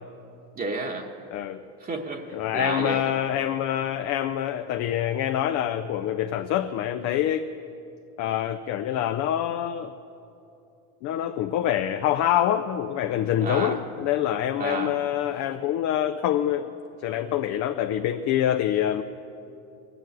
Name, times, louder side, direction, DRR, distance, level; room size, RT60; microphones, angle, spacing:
voice 1, 0.5-1.1 1.8-3.1 13.4-13.8 14.6-15.0, right 3 dB, 25° right, 2 dB, 1.2 m, -31 dB
voice 2, 1.3-1.6 2.3-7.5 8.2-9.9 11.0-16.7 17.0-19.0, left 11 dB, 50° left, 8 dB, 0.6 m, -26 dB
20.0 x 7.1 x 9.3 m, 2.7 s
supercardioid pair, 130°, 34 cm